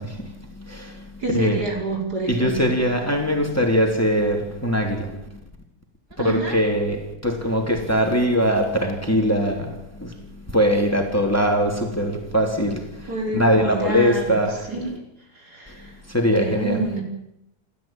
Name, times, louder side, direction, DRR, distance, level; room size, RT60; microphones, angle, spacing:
voice 1, 0.0-1.6 2.3-5.4 6.2-14.7 15.8-16.8, equal, 10° left, 3.4 m, -22 dB
voice 2, 1.2-2.7 6.2-6.6 13.1-14.4 14.7-14.9 15.4-15.9 16.3-17.0, right 2 dB, 65° right, 5.6 m, -28 dB
29.0 x 13.0 x 9.0 m
omnidirectional pair, 1.8 m